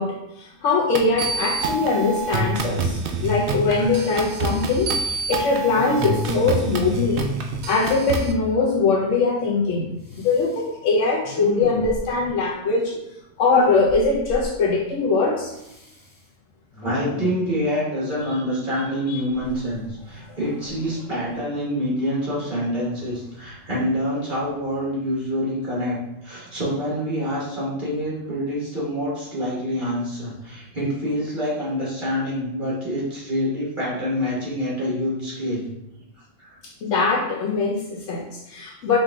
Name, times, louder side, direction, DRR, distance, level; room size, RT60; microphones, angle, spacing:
voice 1, 0.0-7.3 7.7-13.0 13.4-15.5 19.1-19.2 20.2-20.4 36.8-39.0, left 4 dB, 85° left, -2 dB, 1.0 m, -22 dB
sound 1, 0.9-8.3, right 3 dB, 60° right, 0.6 m, -26 dB
Respiratory sounds, 2.3-2.6 2.8-3.6 3.9-4.9 5.6-6.4 10.0-10.7 11.2-12.3 13.9-14.5 15.5-16.2 16.7-17.5 19.3-20.2 20.6-20.8, left 2 dB, 25° left, 0.5 m, -36 dB
voice 2, 16.8-35.7 36.4-36.6, equal, 45° right, -6 dB, 1.5 m, -26 dB
5.1 x 2.6 x 3.5 m, 0.86 s
omnidirectional pair, 1.3 m